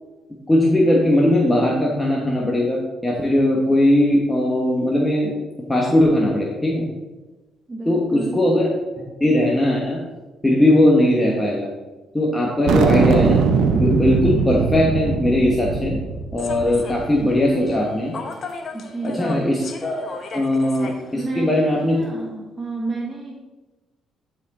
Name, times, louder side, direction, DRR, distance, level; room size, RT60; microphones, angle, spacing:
voice 1, 0.5-5.3 5.7-6.8 7.9-8.7 9.2-10.0 10.4-11.7 12.1-13.4 13.8-16.0 16.3-18.1 19.0-20.0 20.3-22.0, left 1 dB, 10° left, -3 dB, 1.3 m, -19 dB
voice 2, 7.7-8.4 18.7-19.5 21.1-23.4, right 3 dB, 20° right, -2 dB, 1.2 m, -31 dB
sound 1, 12.7-17.3, right 5 dB, 80° right, 0.8 m, -21 dB
Human voice / Subway metro underground, 16.4-22.1, left 4 dB, 50° left, 1.0 m, -37 dB
10.5 x 4.7 x 4.2 m, 1.2 s
cardioid pair, 90°, 0 cm